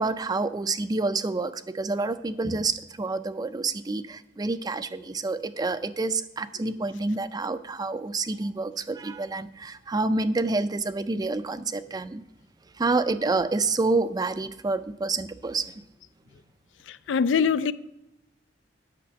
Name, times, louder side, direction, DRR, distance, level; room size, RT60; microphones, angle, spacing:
voice 1, 0.0-12.2 12.8-15.7, right 3 dB, 20° right, 0.4 m, -28 dB
voice 2, 16.8-17.7, left 6 dB, 80° left, 0.4 m, -25 dB
8.7 x 6.0 x 7.0 m
head